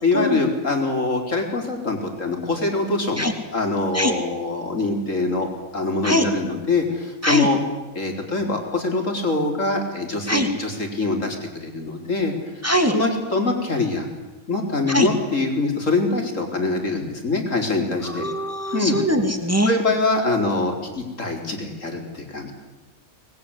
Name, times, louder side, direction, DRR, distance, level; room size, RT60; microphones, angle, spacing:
voice 1, 0.0-5.5 5.7-7.6 7.9-11.4 11.6-12.3 12.9-14.1 14.5-18.2 18.7-19.0 19.7-22.5, left 3 dB, 55° left, 3 dB, 4.5 m, -24 dB
voice 2, 12.6-12.9 14.9-15.1 18.0-19.7, equal, 10° right, 5 dB, 2.7 m, -22 dB
24.5 x 20.5 x 9.9 m, 1.2 s
omnidirectional pair, 1.5 m